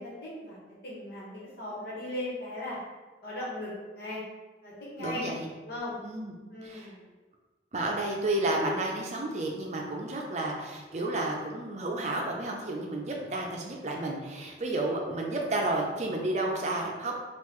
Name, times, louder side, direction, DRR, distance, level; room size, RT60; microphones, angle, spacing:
voice 1, 0.0-2.8 3.2-4.2 4.6-5.3 5.7-6.0 6.5-7.0, left 1 dB, 65° left, -7 dB, 1.3 m, -38 dB
voice 2, 5.0-5.5 6.0-6.3 6.6-6.9 7.7-17.1, right 2 dB, 40° right, 0 dB, 0.5 m, -31 dB
3.7 x 2.5 x 3.1 m, 1.2 s
head